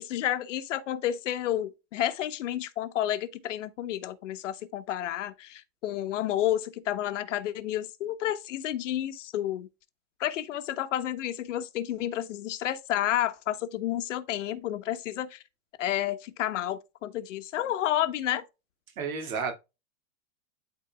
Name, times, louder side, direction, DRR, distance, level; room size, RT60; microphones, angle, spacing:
voice 1, 0.0-9.7 10.2-15.4 15.8-18.4, left 12 dB, 60° left, 1.0 m, -30 dB
voice 2, 19.0-19.5, right 5 dB, 75° right, 2.3 m, -31 dB
12.0 x 4.0 x 2.3 m
supercardioid pair, 170°, 42 cm